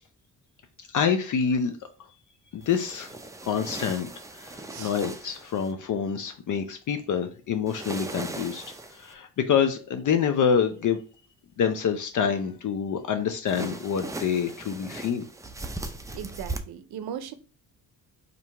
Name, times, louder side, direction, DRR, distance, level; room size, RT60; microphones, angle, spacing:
voice 1, 0.9-1.7 2.5-3.1 3.4-4.1 4.3-8.6 8.9-11.0 11.6-15.3, left 7 dB, 50° left, 0.5 m, -26 dB
sound 1, 2.6-5.7 7.7-9.1 13.5-16.6, right 2 dB, 10° right, 0.4 m, -38 dB
voice 2, 16.1-17.3, right 9 dB, 70° right, 0.6 m, -37 dB
2.7 x 2.6 x 4.3 m
cardioid pair, 75°, 39 cm